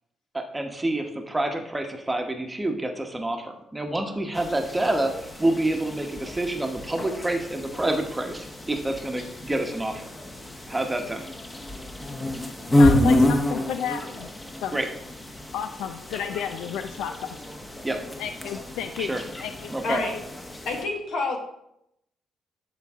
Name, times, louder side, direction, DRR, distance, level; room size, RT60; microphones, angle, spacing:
voice 1, 0.3-5.1 5.4-10.0 10.7-11.3 14.7-14.9 17.8-18.0 19.0-19.2 19.7-20.0, right 1 dB, 15° right, 4 dB, 1.0 m, -27 dB
sound 1, 4.3-20.8, left 1 dB, 20° left, 1.0 m, -28 dB
voice 2, 12.8-14.3 14.6-14.8 15.5-17.2 18.2-20.2, left 8 dB, 90° left, 9 dB, 0.3 m, -32 dB
voice 3, 19.8-20.1 20.6-21.4, left 3 dB, 75° left, 1 dB, 1.8 m, -28 dB
11.5 x 3.9 x 3.6 m, 0.79 s
cardioid pair, 90°, 0 cm